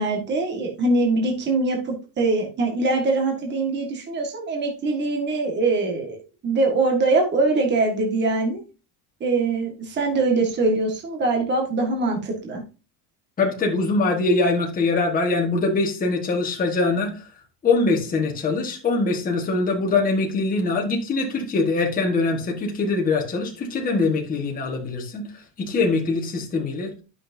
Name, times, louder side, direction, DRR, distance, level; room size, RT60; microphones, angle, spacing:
voice 1, 0.0-8.6 9.2-12.6, right 3 dB, 25° right, 1 dB, 1.8 m, -23 dB
voice 2, 13.4-17.2 17.6-26.9, left 3 dB, 20° left, 1 dB, 1.5 m, -23 dB
10.5 x 6.3 x 2.7 m, 0.32 s
cardioid pair, 165°, 43 cm